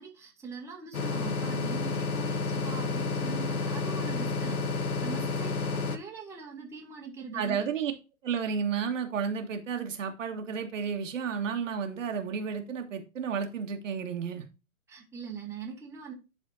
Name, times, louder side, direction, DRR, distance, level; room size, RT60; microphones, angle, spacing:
voice 1, 0.0-7.7 14.9-16.1, right 5 dB, 5° right, 1.8 m, -42 dB
sound 1, 0.9-6.0, left 4 dB, 85° left, 1.1 m, -30 dB
voice 2, 7.3-7.9 8.2-14.4, right 6 dB, 60° right, 1.6 m, -32 dB
12.0 x 4.2 x 2.7 m
hypercardioid pair, 130°, 43 cm